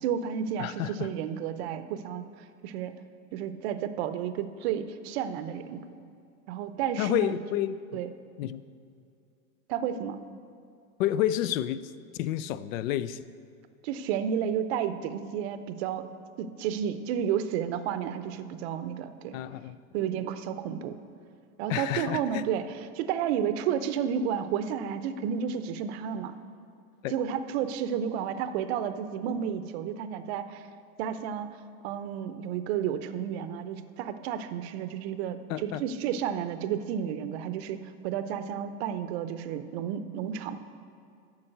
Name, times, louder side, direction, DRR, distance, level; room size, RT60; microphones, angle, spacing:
voice 1, 0.0-2.2 2.6-2.9 3.3-5.8 6.5-7.3 7.9-8.1 9.7-10.2 13.8-16.1 16.4-19.4 19.9-21.0 21.6-26.3 27.1-30.7 31.0-31.6 31.8-37.8 38.0-40.6, right 8 dB, 45° right, 11 dB, 0.7 m, -31 dB
voice 2, 0.6-1.1 7.0-8.0 8.4-8.6 11.0-11.8 12.1-13.3 19.3-19.8 21.7-22.4 27.0-27.1 35.5-35.8, left 12 dB, 65° left, 15 dB, 0.5 m, -30 dB
8.8 x 5.9 x 7.7 m, 2.5 s
supercardioid pair, 140°, 43 cm